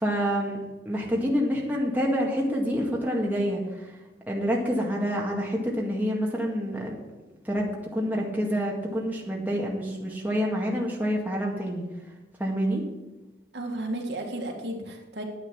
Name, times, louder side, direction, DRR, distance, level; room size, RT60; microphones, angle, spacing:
voice 1, 0.0-3.9 4.3-6.9 7.4-11.8 12.4-12.8, equal, 10° right, -3 dB, 1.9 m, -27 dB
voice 2, 13.5-15.2, right 1 dB, 70° right, 1 dB, 2.0 m, -33 dB
10.0 x 9.3 x 6.1 m, 1.1 s
head